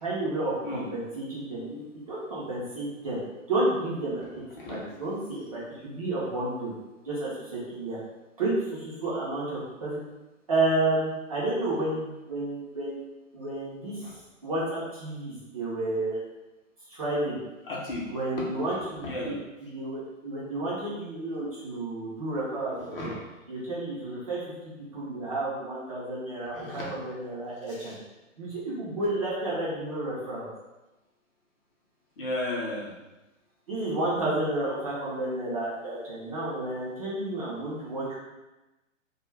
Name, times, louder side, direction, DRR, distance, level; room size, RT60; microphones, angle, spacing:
voice 1, 0.0-3.2 3.5-4.2 4.7-6.7 7.0-8.0 8.4-10.0 10.5-13.0 13.3-13.9 14.4-16.2 16.9-17.4 18.1-19.4 19.7-23.1 23.5-24.4 24.9-27.9 28.4-30.5 33.7-38.2, right 2 dB, 30° right, -8 dB, 0.5 m, -31 dB
voice 2, 17.6-18.1 18.4-19.4 22.9-23.2 26.5-26.9 27.7-28.0 32.2-32.9, left 1 dB, 45° left, -4 dB, 0.7 m, -34 dB
2.2 x 2.1 x 3.1 m, 1.0 s
hypercardioid pair, 145°, 40 cm